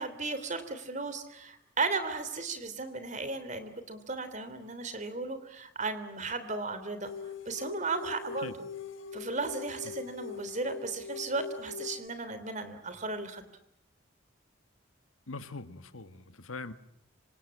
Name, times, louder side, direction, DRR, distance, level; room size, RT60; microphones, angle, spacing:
voice 1, 0.0-7.1 7.4-8.5 9.1-13.4, right 3 dB, 35° right, 11 dB, 3.2 m, -35 dB
sound 1, 7.0-12.1, left 5 dB, 70° left, 1.3 m, -42 dB
voice 2, 15.3-16.7, left 3 dB, 90° left, 10 dB, 1.8 m, -42 dB
26.0 x 26.0 x 8.7 m, 0.73 s
head